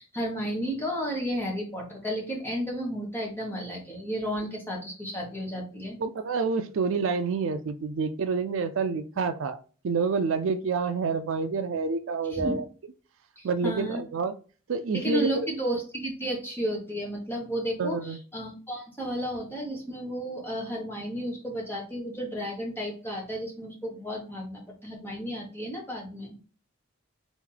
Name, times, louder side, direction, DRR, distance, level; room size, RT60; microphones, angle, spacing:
voice 1, 0.0-6.0 12.3-12.6 13.4-14.0 14.9-26.4, equal, 10° left, 1.2 m, -33 dB
voice 2, 6.0-9.6 9.8-12.6 13.4-14.3 14.7-15.5 17.8-18.2, right 4 dB, 65° right, 0.4 m, -28 dB
3.6 x 3.0 x 3.8 m
head